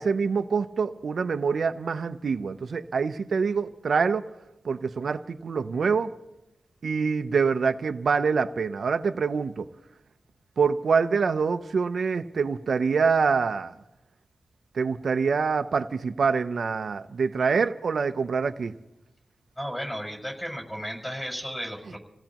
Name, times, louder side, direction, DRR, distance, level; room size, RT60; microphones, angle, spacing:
voice 1, 0.0-4.3 4.6-6.1 6.8-9.7 10.6-13.7 14.7-18.7, right 5 dB, 70° right, 0.6 m, -25 dB
voice 2, 19.6-22.0, equal, 15° left, 5.5 m, -34 dB
28.5 x 17.0 x 3.0 m
wide cardioid pair, 110°, 0 cm